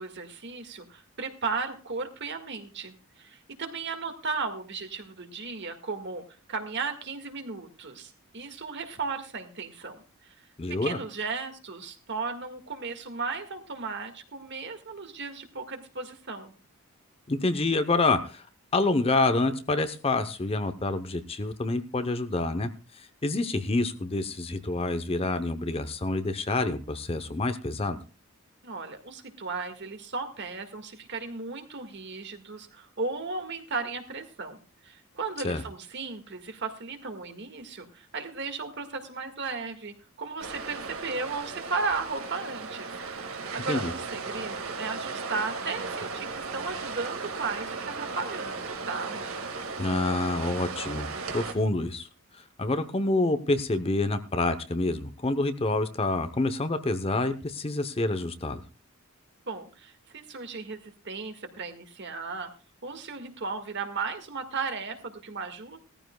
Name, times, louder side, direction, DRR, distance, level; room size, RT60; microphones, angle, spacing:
voice 1, 0.0-6.2 6.5-10.5 10.8-16.5 28.6-42.9 43.2-49.2 59.5-62.5 62.8-65.8, right 4 dB, 55° right, 6 dB, 1.8 m, -35 dB
voice 2, 10.6-11.0 17.3-18.5 18.7-28.0 35.4-35.6 43.7-43.9 49.8-52.1 52.3-58.6, left 2 dB, 25° left, 10 dB, 0.7 m, -27 dB
sound 1, 40.4-51.5, right 4 dB, 75° right, 1.9 m, -36 dB
18.5 x 14.0 x 2.3 m, 0.33 s
head